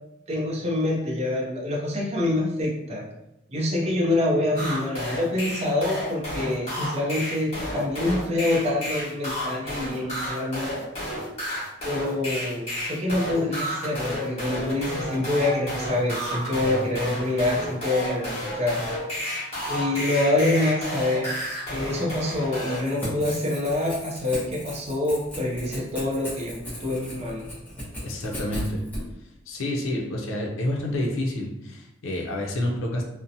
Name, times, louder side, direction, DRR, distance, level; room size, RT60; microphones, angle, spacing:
voice 1, 0.3-3.0 3.5-10.7 11.8-18.8 19.7-21.3 21.7-27.4, left 2 dB, 30° right, -3 dB, 0.5 m, -26 dB
sound 1, 4.6-22.8, equal, 30° left, 1.1 m, -31 dB
Crackle / Tearing, 22.6-29.0, equal, 10° left, 0.7 m, -36 dB
voice 2, 28.0-28.8 29.2-33.0, left 1 dB, 80° left, -1 dB, 0.5 m, -29 dB
2.7 x 2.1 x 2.5 m, 0.87 s
head